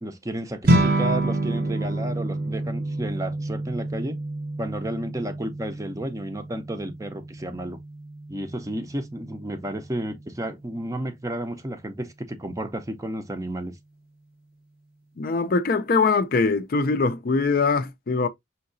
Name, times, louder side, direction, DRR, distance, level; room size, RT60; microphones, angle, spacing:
voice 1, 0.0-4.2 4.6-7.8 8.3-13.8, right 1 dB, 15° right, 0.5 m, -32 dB
sound 1, 0.6-10.1, right 2 dB, 50° right, 0.7 m, -28 dB
voice 2, 15.2-18.3, left 4 dB, 45° left, 0.4 m, -22 dB
5.6 x 2.8 x 2.6 m
head